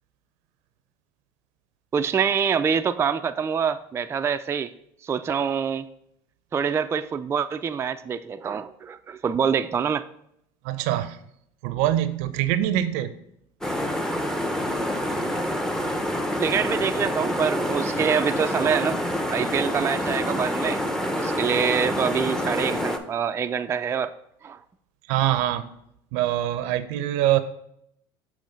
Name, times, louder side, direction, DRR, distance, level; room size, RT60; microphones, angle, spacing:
voice 1, 1.9-4.7 5.0-5.9 6.5-10.0 16.4-19.0 19.3-20.8 21.1-24.1 24.4-24.6, right 7 dB, 20° right, 8 dB, 0.3 m, -25 dB
voice 2, 10.6-11.2 11.6-13.1 25.1-25.7 26.1-27.4, right 13 dB, 70° right, 12 dB, 0.6 m, -24 dB
sound 1, 13.6-23.0, equal, 5° left, 0.7 m, -27 dB
7.0 x 3.1 x 5.2 m, 0.73 s
supercardioid pair, 90°, 13 cm